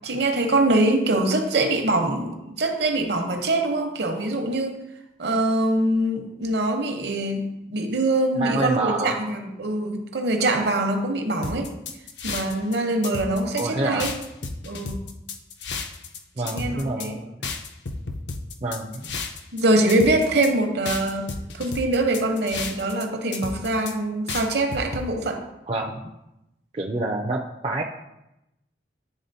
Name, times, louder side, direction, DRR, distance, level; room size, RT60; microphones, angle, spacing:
voice 1, 0.0-4.7 5.2-11.7 12.2-14.1 14.7-15.1 16.4-17.2 19.5-21.3 21.5-25.4, right 2 dB, 60° right, 4 dB, 0.8 m, -23 dB
voice 2, 8.4-9.2 13.6-14.1 16.4-17.4 18.6-19.2 25.7-26.0 26.7-27.8, right 2 dB, 30° right, 0 dB, 0.4 m, -27 dB
sound 1, 11.4-12.8 13.0-13.7 14.0-16.2 16.5-17.1 17.4-19.6 19.9-20.5 20.9-23.0 23.3-23.9 24.3-25.0, left 4 dB, 75° left, 0.6 m, -32 dB
10.5 x 3.9 x 2.7 m, 0.90 s
head